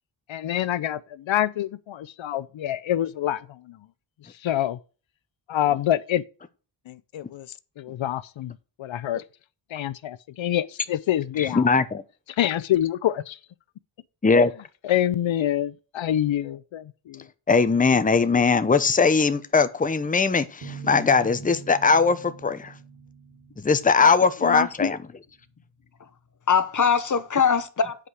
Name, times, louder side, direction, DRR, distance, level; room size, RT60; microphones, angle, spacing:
voice 1, 0.3-3.9 4.2-4.8 5.5-6.2 6.9-9.2 9.7-11.7 12.3-13.4 14.8-17.3, left 12 dB, 85° left, 0.6 m, -26 dB
voice 2, 11.4-12.0 14.2-14.5 17.5-22.7 23.6-25.0, left 4 dB, 20° left, 0.7 m, -20 dB
sound 1, 20.6-24.3, right 6 dB, 55° right, 2.6 m, -42 dB
voice 3, 24.4-24.9 26.5-28.0, left 6 dB, 40° left, 1.0 m, -22 dB
8.4 x 4.9 x 6.1 m
wide cardioid pair, 95°, 45 cm